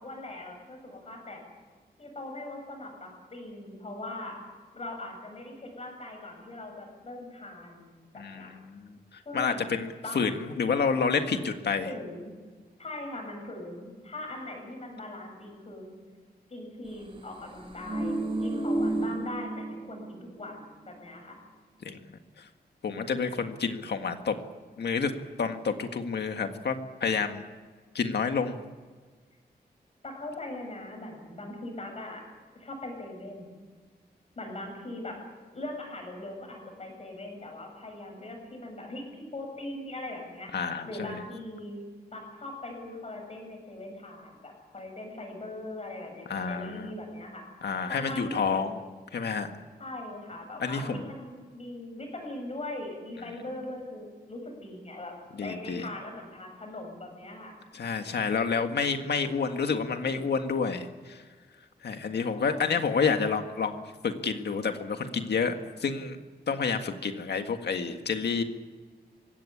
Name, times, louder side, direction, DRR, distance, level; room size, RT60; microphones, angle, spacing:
voice 1, 0.0-1.4 2.0-4.4 4.7-8.5 9.2-9.6 10.0-10.2 11.8-12.3 12.8-16.0 16.5-21.4 30.0-32.2 32.5-33.5 34.4-35.2 35.5-40.5 40.8-47.5 47.9-48.6 49.8-57.6 62.3-62.8, left 1 dB, 40° left, 2 dB, 7.7 m, -40 dB
voice 2, 8.2-9.0 9.3-11.9 21.8-22.0 22.4-22.5 22.8-24.4 24.8-25.1 25.4-27.4 27.9-28.6 40.5-41.2 46.3-46.9 47.6-48.7 49.1-49.5 50.6-51.0 55.3-55.9 57.7-61.2 61.8-66.2 66.5-68.4, left 5 dB, 80° left, 6 dB, 1.8 m, -29 dB
sound 1, 17.5-20.2 20.5-20.6, right 2 dB, 35° right, 4.0 m, -31 dB
22.0 x 17.0 x 10.0 m, 1.4 s
wide cardioid pair, 150°, 17 cm